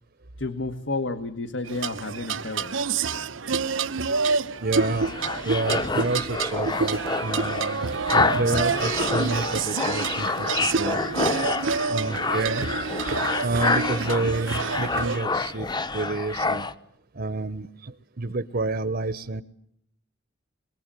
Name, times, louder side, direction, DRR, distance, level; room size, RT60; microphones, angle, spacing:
voice 1, 0.4-2.7, left 2 dB, 65° left, 10 dB, 1.7 m, -31 dB
sound 1, 1.6-15.2, right 5 dB, 70° right, 1.0 m, -28 dB
voice 2, 4.6-5.1 5.4-11.0 11.9-12.6 13.4-15.7 15.9-16.6 17.2-19.4, right 3 dB, 50° right, 14 dB, 1.0 m, -29 dB
sound 2, 4.8-16.7, left 3 dB, 20° left, 1.0 m, -28 dB
27.5 x 23.0 x 9.2 m, 0.73 s
head